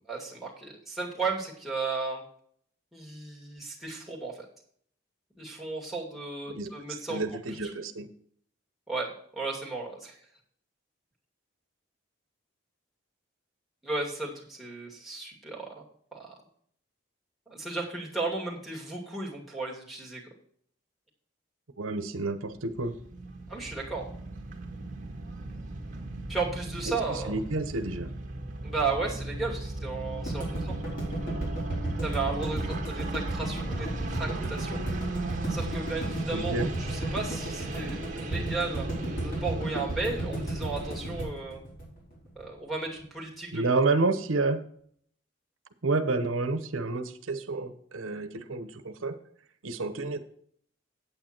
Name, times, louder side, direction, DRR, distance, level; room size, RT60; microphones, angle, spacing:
voice 1, 0.1-2.2 2.9-4.5 5.4-7.2 8.9-10.1 13.8-15.8 16.1-16.3 17.5-20.2 23.5-24.1 26.3-27.3 28.6-30.7 32.0-34.8 35.5-38.9 39.2-41.6 42.4-43.6, right 3 dB, ahead, -5 dB, 2.6 m, -34 dB
voice 2, 6.5-8.1 21.8-22.9 26.9-28.1 36.3-36.7 43.5-44.6 45.8-49.1 49.6-50.2, right 3 dB, 90° right, 9 dB, 0.9 m, -30 dB
sound 1, 22.5-41.3, right 2 dB, 40° right, 1.7 m, -38 dB
sound 2, 30.3-42.4, right 1 dB, 45° left, 4.7 m, -33 dB
9.0 x 8.5 x 4.4 m, 0.62 s
head